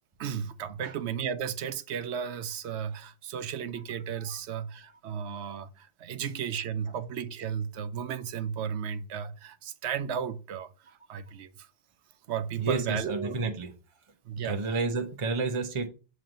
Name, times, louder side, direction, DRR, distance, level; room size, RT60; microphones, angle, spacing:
voice 1, 0.2-11.7 12.3-13.5 14.2-14.6, right 7 dB, 85° right, 0.9 m, -34 dB
voice 2, 12.6-13.7 14.4-15.9, right 3 dB, 35° right, 0.7 m, -30 dB
7.4 x 3.1 x 5.2 m
omnidirectional pair, 1.1 m